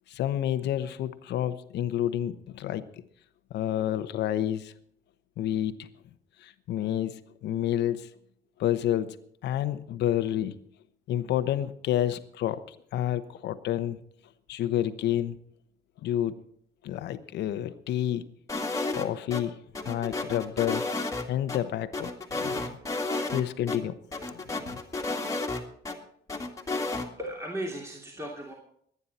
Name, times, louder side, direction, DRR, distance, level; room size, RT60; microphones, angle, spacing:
voice 1, 0.1-2.8 3.5-4.7 5.4-5.9 6.4-8.1 8.6-9.2 9.4-10.6 11.1-14.0 14.5-15.4 16.0-16.4 16.8-18.2 18.9-19.6 19.8-20.8 21.3-22.8 23.3-24.8, left 11 dB, 85° left, 11 dB, 1.0 m, -29 dB
sound 1, 18.5-19.4 19.7-21.6 21.9-23.4 23.7-23.8 24.1-25.9 26.3-27.1, left 3 dB, 20° left, 2.1 m, -31 dB
voice 2, 26.9-28.5, right 1 dB, 15° right, -2 dB, 2.9 m, -36 dB
22.0 x 9.6 x 4.3 m, 0.67 s
cardioid pair, 110°, 17 cm